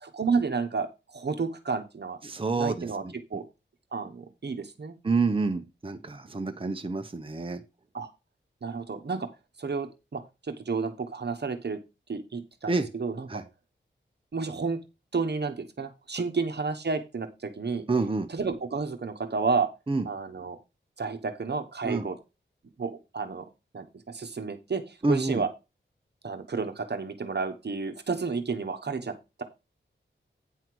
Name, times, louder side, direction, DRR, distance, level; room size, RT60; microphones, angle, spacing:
voice 1, 0.0-2.2 2.6-3.0 3.3-3.4 3.9-5.0 7.9-8.1 8.6-9.3 9.6-11.8 12.1-13.4 14.3-14.8 15.1-17.8 18.3-19.7 20.0-20.6 21.0-22.2 22.8-23.5 23.7-25.5 26.2-29.1, right 4 dB, 55° right, 7 dB, 1.2 m, -31 dB
voice 2, 2.2-3.1 5.0-7.6 12.7-12.9 13.3-13.4 17.9-18.3 19.9-20.1 21.8-22.0 25.0-25.4, right 3 dB, 25° right, 6 dB, 0.9 m, -28 dB
9.3 x 5.7 x 4.7 m, 0.26 s
wide cardioid pair, 90°, 20 cm